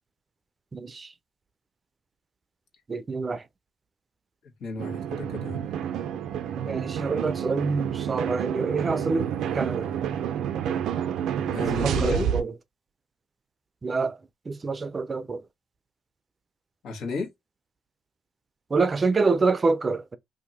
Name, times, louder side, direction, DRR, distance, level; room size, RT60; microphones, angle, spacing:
voice 1, 0.7-1.1 2.9-3.4 6.7-9.3 9.5-9.9 11.8-12.5 13.8-14.2 14.5-15.4 18.7-20.2, right 4 dB, 30° right, 0.5 m, -26 dB
voice 2, 4.6-5.7 11.5-12.3 16.8-17.3, left 3 dB, 75° left, 1.4 m, -33 dB
sound 1, 4.8-12.4, right 9 dB, 80° right, 0.5 m, -29 dB
2.8 x 2.6 x 4.0 m
cardioid pair, 90°, 0 cm